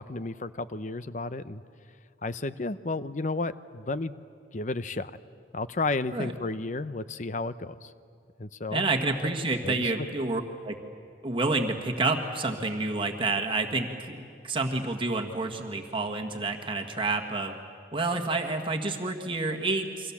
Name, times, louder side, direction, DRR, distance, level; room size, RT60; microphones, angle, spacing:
voice 1, 0.0-1.6 2.2-4.1 4.5-5.1 5.5-7.9 8.4-8.8 9.6-9.9, left 3 dB, 40° left, 14 dB, 0.7 m, -32 dB
voice 2, 8.7-10.8 11.2-17.5 17.9-20.1, right 3 dB, 25° right, 2 dB, 1.6 m, -29 dB
30.0 x 25.0 x 7.3 m, 2.4 s
head